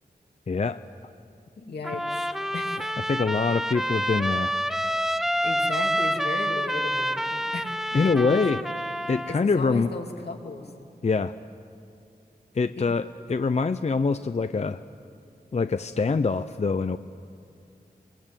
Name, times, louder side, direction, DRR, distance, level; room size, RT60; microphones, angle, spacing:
voice 1, 0.5-0.8 3.1-4.6 7.9-8.6 9.1-9.9 11.0-11.3 12.5-14.8 15.5-17.0, left 4 dB, 40° left, 10 dB, 0.6 m, -24 dB
voice 2, 1.6-2.3 2.5-3.0 5.1-8.4 9.3-10.7 12.8-13.0, left 3 dB, 80° left, 1 dB, 2.8 m, -36 dB
Trumpet, 1.8-9.4, equal, ahead, 0.7 m, -28 dB
26.0 x 22.0 x 9.0 m, 2.4 s
wide cardioid pair, 100°, 16 cm